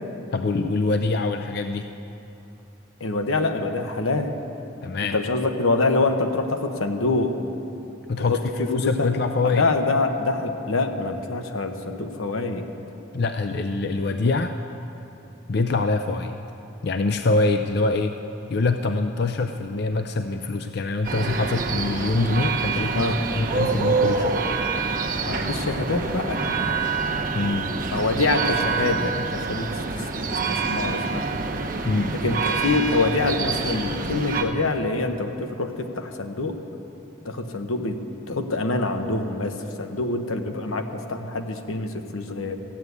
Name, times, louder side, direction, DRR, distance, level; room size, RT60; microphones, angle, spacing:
voice 1, 0.3-1.9 4.8-5.2 8.1-8.4 8.7-9.6 13.1-14.5 15.5-16.4 16.8-18.1 18.5-24.4 27.3-27.7 31.8-32.1, left 3 dB, 50° left, 7 dB, 0.5 m, -24 dB
voice 2, 3.0-4.3 5.0-7.4 8.2-9.1 9.4-12.6 22.9-23.2 25.2-26.4 27.9-31.2 32.2-36.6 37.2-38.0 38.3-42.6, left 3 dB, 90° left, 6 dB, 1.0 m, -25 dB
sound 1, 21.0-34.4, right 4 dB, 40° right, 1.0 m, -26 dB
14.5 x 9.3 x 8.2 m, 2.9 s
head